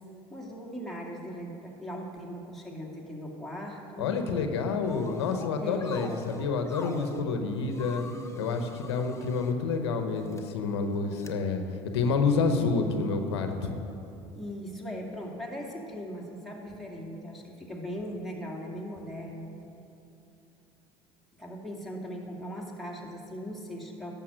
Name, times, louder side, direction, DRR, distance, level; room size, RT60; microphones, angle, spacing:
voice 1, 0.3-4.1 5.6-6.1 14.4-19.5 21.4-24.1, equal, ahead, -3 dB, 2.3 m, -39 dB
voice 2, 4.0-8.1 8.4-11.6 11.9-13.7, left 4 dB, 90° left, 6 dB, 0.8 m, -28 dB
sound 1, 4.8-5.5 5.8-7.2 7.7-9.5 10.2-10.4 11.2-11.3, left 4 dB, 20° left, 0.9 m, -45 dB
11.5 x 7.0 x 6.3 m, 2.8 s
hypercardioid pair, 75°, 14 cm